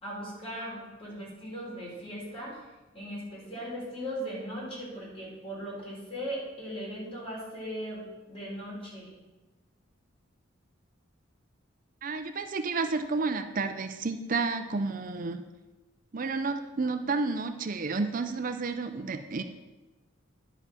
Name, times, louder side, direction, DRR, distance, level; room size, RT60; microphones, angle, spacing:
voice 1, 0.0-2.6 2.9-9.1, equal, 30° left, -5 dB, 3.8 m, -38 dB
voice 2, 12.0-15.4 16.1-19.4, right 3 dB, 40° right, 8 dB, 0.5 m, -31 dB
10.5 x 5.7 x 5.9 m, 1.1 s
head